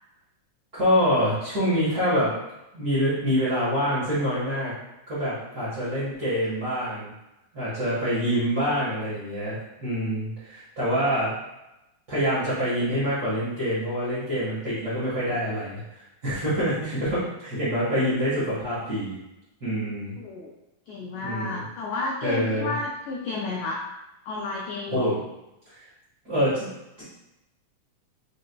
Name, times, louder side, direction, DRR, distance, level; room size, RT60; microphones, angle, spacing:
voice 1, 0.7-2.3 2.7-4.7 5.1-7.1 7.5-11.4 12.1-15.8 16.2-19.2 19.6-20.1 21.2-21.6 22.2-22.7 24.9-25.2 26.2-26.7, equal, 45° right, -12 dB, 1.2 m, -26 dB
voice 2, 20.2-20.6 20.9-23.8 24.2-25.1, left 3 dB, 85° left, -2 dB, 1.7 m, -31 dB
4.9 x 3.9 x 2.2 m, 0.92 s
omnidirectional pair, 3.9 m